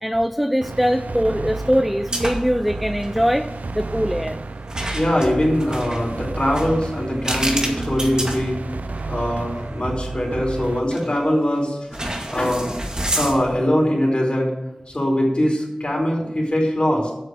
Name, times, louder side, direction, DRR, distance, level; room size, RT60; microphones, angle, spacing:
voice 1, 0.0-3.5 3.7-4.4, equal, ahead, 8 dB, 0.5 m, -21 dB
sound 1, 0.6-10.8, right 3 dB, 90° right, 0.5 m, -31 dB
sound 2, 2.1-2.6 2.9-3.1 4.7-9.1 9.6-9.7 10.9-11.3 11.9-13.7, right 1 dB, 30° right, 2.1 m, -29 dB
voice 2, 4.9-8.6 9.1-12.0 12.3-12.7 13.1-14.5 14.9-17.1, equal, 45° left, -2 dB, 4.6 m, -22 dB
8.1 x 6.6 x 8.2 m, 0.95 s
wide cardioid pair, 50°, 3 cm